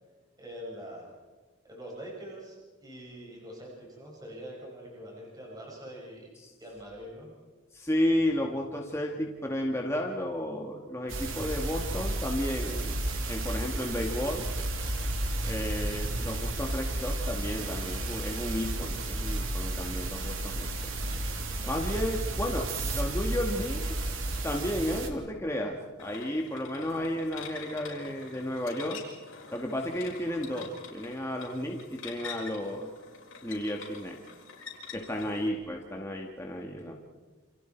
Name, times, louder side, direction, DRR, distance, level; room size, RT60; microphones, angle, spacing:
voice 1, 0.4-1.1 1.6-2.6 2.8-6.3 6.6-7.3 17.7-17.8 21.6-21.9, equal, 20° right, -3 dB, 5.9 m, -44 dB
voice 2, 7.7-13.0 13.3-14.5 15.4-20.9 21.6-23.8 24.4-29.0 29.5-32.9 33.4-34.2 34.9-36.9, left 1 dB, 15° left, 0 dB, 1.9 m, -32 dB
sound 1, 11.1-25.1, right 1 dB, 90° right, 2.8 m, -32 dB
sound 2, 26.0-35.5, left 5 dB, 80° left, 6.1 m, -46 dB
29.5 x 27.5 x 4.6 m, 1.3 s
head